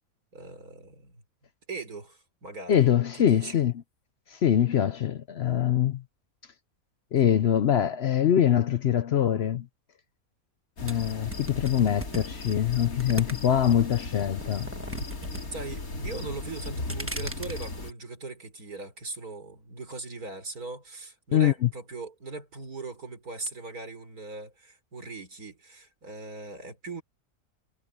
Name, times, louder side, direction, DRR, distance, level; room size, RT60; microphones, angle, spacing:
voice 1, 0.3-1.2 1.7-2.8 3.2-3.6 15.5-27.0, right 3 dB, 85° right, 5.0 m, -40 dB
voice 2, 2.7-3.7 4.3-6.0 7.1-9.7 10.8-14.7 21.3-21.7, left 10 dB, 60° left, 0.7 m, -23 dB
sound 1, 10.8-17.9, left 2 dB, 75° left, 3.2 m, -37 dB
sound 2, 10.9-13.7 14.1-15.4 15.7-16.2 16.5-17.7, right 1 dB, 10° right, 1.2 m, -38 dB
omnidirectional pair, 1.5 m